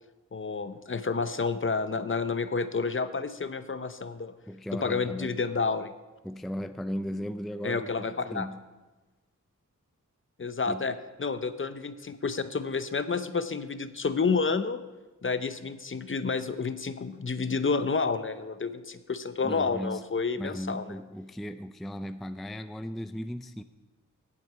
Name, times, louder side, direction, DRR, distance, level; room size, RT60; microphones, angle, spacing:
voice 1, 0.3-4.3 4.7-5.9 7.6-8.5 10.4-14.8 15.2-20.8, left 4 dB, 40° left, 12 dB, 0.7 m, -30 dB
voice 2, 4.5-5.4 6.2-8.6 10.7-10.9 19.4-20.0 20.4-23.6, equal, ahead, 11 dB, 0.4 m, -37 dB
17.0 x 7.6 x 4.8 m, 1.2 s
wide cardioid pair, 75°, 31 cm